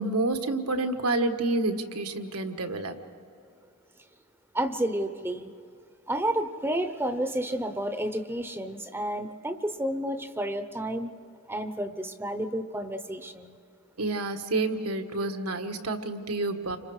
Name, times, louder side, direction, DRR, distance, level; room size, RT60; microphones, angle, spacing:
voice 1, 0.0-3.0 14.0-16.8, right 2 dB, 80° right, 5 dB, 1.6 m, -29 dB
voice 2, 4.5-5.5 6.1-11.1 11.5-13.5, right 1 dB, 10° right, 9 dB, 0.8 m, -30 dB
29.5 x 26.0 x 4.8 m, 2.6 s
head